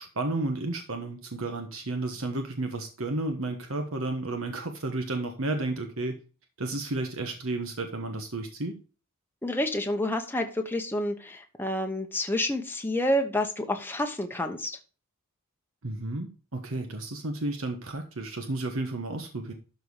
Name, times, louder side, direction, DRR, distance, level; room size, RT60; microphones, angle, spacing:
voice 1, 0.0-6.2 6.6-8.7 15.8-19.5, right 2 dB, 65° right, 5 dB, 1.3 m, -32 dB
voice 2, 9.4-14.8, left 1 dB, 10° left, 4 dB, 0.9 m, -29 dB
12.5 x 4.3 x 4.8 m, 0.35 s
head